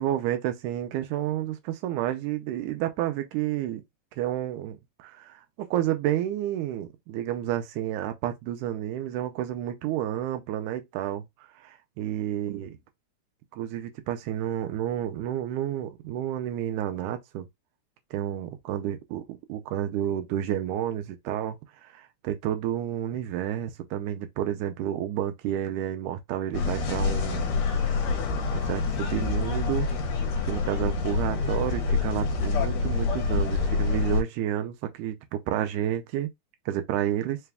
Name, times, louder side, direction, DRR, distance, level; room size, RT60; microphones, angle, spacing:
voice 1, 0.0-3.8 4.1-12.8 13.5-17.5 18.1-27.6 28.5-29.9 30.5-36.3 36.7-37.4, right 11 dB, 85° right, 2.1 m, -30 dB
sound 1, 26.5-34.2, left 4 dB, 70° left, 1.9 m, -27 dB
4.9 x 2.3 x 3.3 m
omnidirectional pair, 3.5 m